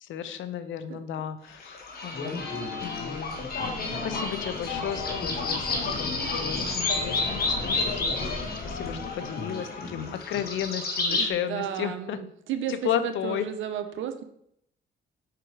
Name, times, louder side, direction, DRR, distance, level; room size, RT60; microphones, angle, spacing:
voice 1, 0.0-1.8 2.0-2.4 2.8-7.9 8.3-8.4 8.6-12.2 12.7-13.5, left 9 dB, 75° left, 12 dB, 0.6 m, -34 dB
sound 1, 1.6-11.3, left 3 dB, 50° left, 1.5 m, -30 dB
voice 2, 11.1-14.2, right 9 dB, 80° right, 8 dB, 0.8 m, -33 dB
5.1 x 4.6 x 4.7 m, 0.72 s
cardioid pair, 90°, 20 cm